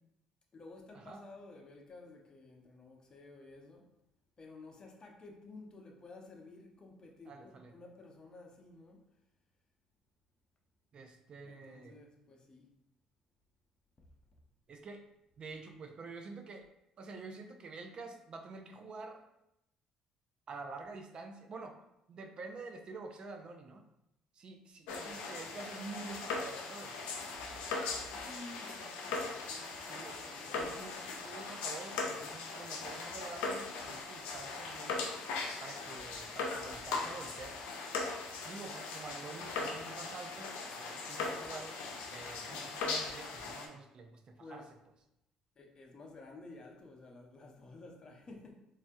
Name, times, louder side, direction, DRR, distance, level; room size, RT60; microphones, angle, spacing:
voice 1, 0.5-3.9 4.4-9.0 11.4-12.7 24.9-25.5 28.2-30.8 44.4-44.7 45.6-48.5, left 2 dB, 40° left, 1 dB, 0.6 m, -53 dB
voice 2, 7.3-7.7 10.9-12.0 14.7-15.0 15.4-16.7 17.0-19.2 20.5-21.8 22.1-23.8 24.3-27.1 29.8-30.2 30.5-35.0 35.6-37.6 38.4-41.8 42.1-44.6, right 3 dB, 50° right, 4 dB, 0.4 m, -48 dB
sound 1, 24.9-43.7, left 4 dB, 80° left, 0.4 m, -39 dB
3.2 x 2.3 x 2.6 m, 0.84 s
supercardioid pair, 65°, 2 cm